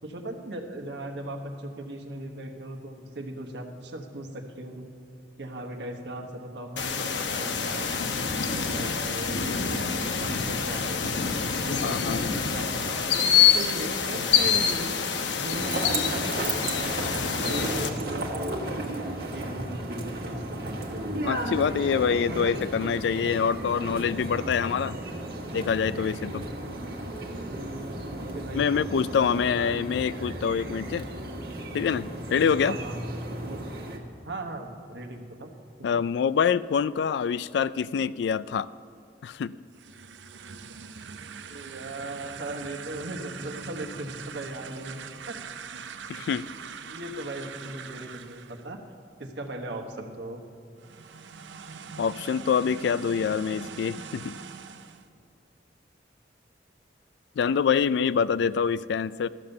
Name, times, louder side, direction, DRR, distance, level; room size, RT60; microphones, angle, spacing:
voice 1, 0.0-4.9 5.4-7.9 8.3-11.0 11.6-15.0 15.4-16.9 17.4-18.6 19.3-21.8 22.3-22.6 23.0-23.1 28.3-29.0 29.5-30.0 32.6-33.0 33.5-33.6 34.2-35.5 35.8-36.0 41.5-45.4 46.2-46.5 46.8-48.8 49.2-50.4, right 1 dB, 70° right, 4 dB, 1.3 m, -38 dB
sound 1, 6.8-17.9, left 7 dB, 90° left, 0.9 m, -26 dB
voice 2, 11.8-12.3 21.2-25.0 25.5-26.5 28.5-31.1 31.7-32.8 35.8-38.7 39.2-39.5 46.1-46.5 52.0-54.3 57.4-59.3, left 6 dB, 70° left, 17 dB, 0.3 m, -26 dB
sound 2, 15.5-34.0, right 1 dB, 55° right, 1.4 m, -34 dB
sound 3, 39.7-48.7 50.8-55.1, right 6 dB, 90° right, 0.6 m, -42 dB
13.0 x 7.1 x 6.7 m, 2.5 s
head